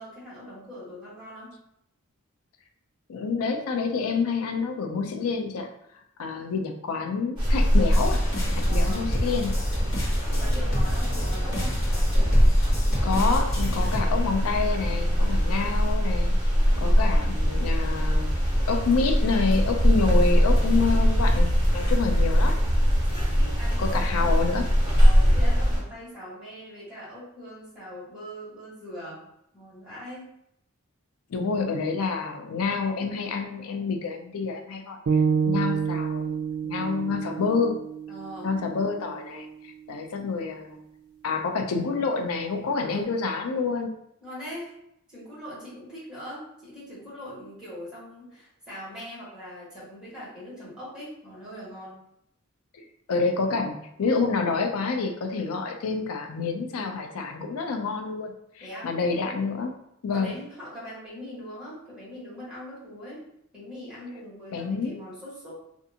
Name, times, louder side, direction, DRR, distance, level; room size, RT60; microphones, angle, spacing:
voice 1, 0.0-1.5 8.6-9.1 10.1-11.8 16.7-17.2 23.1-24.3 25.0-29.2 29.5-30.3 38.1-38.6 42.8-43.1 44.2-44.7 45.1-52.0 58.6-58.9 60.1-63.2 63.5-65.5, equal, 5° right, -10 dB, 1.3 m, -41 dB
voice 2, 3.1-5.7 6.2-8.2 8.5-9.5 13.0-16.3 16.8-18.3 18.7-22.5 23.8-24.7 31.3-36.4 36.6-37.8 38.4-39.5 39.9-40.8 41.2-43.9 52.7-59.7 60.0-60.4 64.5-65.0, left 4 dB, 80° left, 4 dB, 0.4 m, -28 dB
sound 1, 7.4-25.8, equal, 20° right, 1.1 m, -22 dB
sound 2, 7.9-14.0, equal, 60° left, 1.0 m, -31 dB
sound 3, 35.1-39.2, right 6 dB, 70° right, 0.4 m, -28 dB
2.5 x 2.5 x 2.7 m, 0.77 s
head